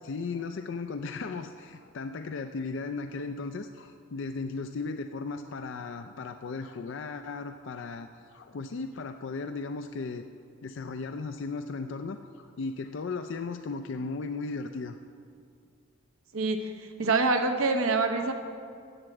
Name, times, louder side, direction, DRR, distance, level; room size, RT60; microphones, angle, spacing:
voice 1, 0.0-10.2 10.6-15.0, left 4 dB, 60° left, 7 dB, 0.4 m, -36 dB
voice 2, 16.3-18.3, right 3 dB, 80° right, 6 dB, 0.8 m, -26 dB
11.0 x 7.2 x 7.8 m, 2.3 s
head